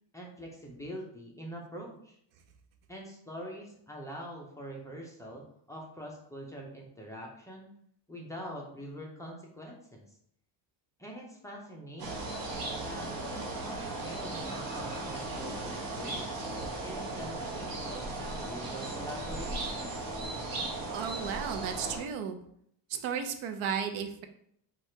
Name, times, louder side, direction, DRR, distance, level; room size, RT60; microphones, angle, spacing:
voice 1, 0.1-2.2 2.9-7.7 8.1-10.0 11.0-12.5 12.8-13.2 13.6-16.4 16.8-19.9, equal, 5° left, -2 dB, 0.5 m, -44 dB
sound 1, 12.0-22.0, right 2 dB, 45° right, 1.0 m, -37 dB
voice 2, 20.9-22.4 22.9-24.3, right 7 dB, 85° right, 7 dB, 0.7 m, -34 dB
4.6 x 2.5 x 4.4 m, 0.69 s
cardioid pair, 170°, 47 cm